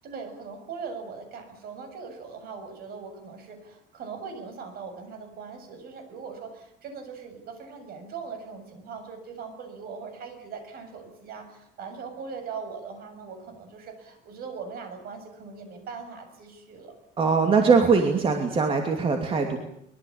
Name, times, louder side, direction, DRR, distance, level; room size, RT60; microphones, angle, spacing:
voice 1, 0.0-16.9, right 5 dB, 55° right, 7 dB, 7.3 m, -40 dB
voice 2, 17.2-19.6, right 5 dB, 30° right, 4 dB, 2.7 m, -21 dB
24.0 x 22.5 x 8.8 m, 0.74 s
cardioid pair, 175°, 19 cm